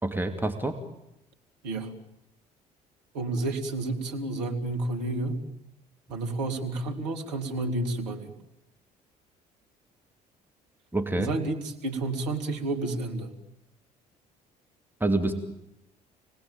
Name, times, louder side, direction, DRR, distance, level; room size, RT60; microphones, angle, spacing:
voice 1, 0.0-0.8 10.9-11.3 15.0-15.3, right 2 dB, 10° right, 5 dB, 2.9 m, -27 dB
voice 2, 3.1-5.4 6.1-8.3 11.1-13.3, right 2 dB, 80° right, 4 dB, 3.0 m, -30 dB
29.0 x 19.5 x 9.1 m, 0.86 s
hypercardioid pair, 55°, 21 cm